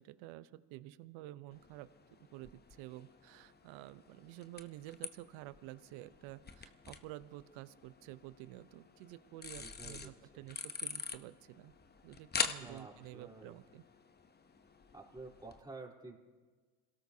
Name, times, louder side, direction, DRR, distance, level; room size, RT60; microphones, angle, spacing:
voice 1, 0.0-1.9 2.3-11.7 12.0-13.8, right 15 dB, 70° right, 14 dB, 0.8 m, -50 dB
sound 1, 1.5-15.6, left 5 dB, 20° left, 0.9 m, -46 dB
voice 2, 9.6-10.4 12.6-13.6 14.9-16.2, right 3 dB, 10° right, -2 dB, 3.6 m, -51 dB
27.0 x 17.5 x 2.8 m, 1.4 s
supercardioid pair, 80°, 48 cm